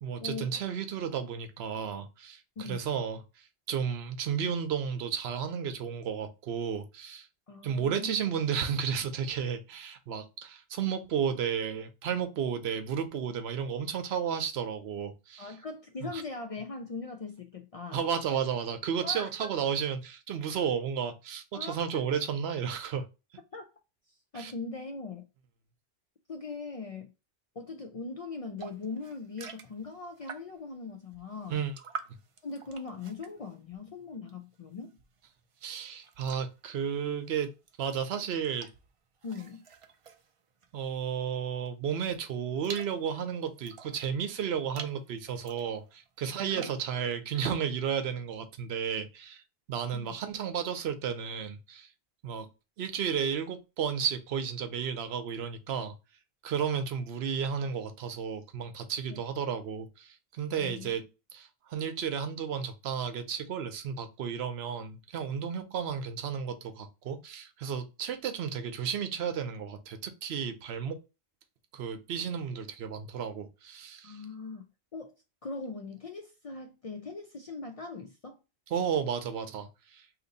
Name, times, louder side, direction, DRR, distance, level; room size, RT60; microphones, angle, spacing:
voice 1, 0.0-3.2 3.7-7.3 7.6-15.5 16.0-16.2 17.9-23.0 24.3-24.5 31.5-31.8 35.6-37.5 37.8-38.7 40.7-49.4 49.7-51.9 52.2-52.5 52.8-55.9 56.4-71.0 71.7-74.2 78.7-80.0, right 7 dB, 80° right, 0.9 m, -33 dB
voice 2, 7.5-8.2 15.4-18.0 19.0-19.3 21.5-22.0 23.5-23.6 24.3-25.3 26.3-27.1 27.6-31.6 32.4-35.0 39.2-39.7 46.3-46.8 49.9-50.1 59.1-59.2 60.5-60.9 74.0-74.6 74.9-75.1 75.4-78.4, left 4 dB, 55° left, 0.4 m, -40 dB
sound 1, 28.6-30.7 31.1-34.6 34.9-41.2 41.7-44.0 44.6-45.0 45.4-46.9, right 6 dB, 55° right, 0.3 m, -47 dB
2.9 x 2.6 x 3.8 m
omnidirectional pair, 1.1 m